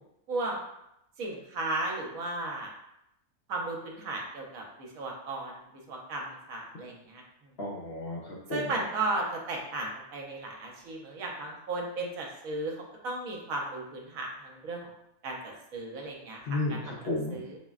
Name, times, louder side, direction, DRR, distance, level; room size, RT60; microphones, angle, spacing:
voice 1, 0.3-0.6 1.2-2.7 3.5-5.5 5.9-7.2 8.5-14.9 15.2-16.9 17.3-17.6, right 2 dB, 75° right, 0 dB, 1.1 m, -35 dB
voice 2, 7.6-8.6 16.5-17.4, left 2 dB, 60° left, -3 dB, 0.7 m, -33 dB
6.0 x 2.1 x 2.3 m, 0.82 s
omnidirectional pair, 1.5 m